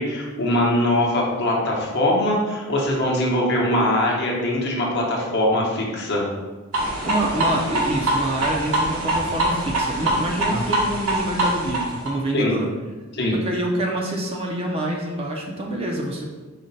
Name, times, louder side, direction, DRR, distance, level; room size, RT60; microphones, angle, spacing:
voice 1, 0.0-6.3 10.5-10.6 12.3-12.5 13.1-13.4, left 1 dB, 50° left, -2 dB, 0.8 m, -22 dB
sound 1, 6.7-12.1, right 1 dB, 90° right, 1.0 m, -24 dB
voice 2, 7.0-12.7 13.3-16.3, right 1 dB, 25° right, 0 dB, 0.4 m, -26 dB
5.0 x 2.1 x 3.9 m, 1.3 s
head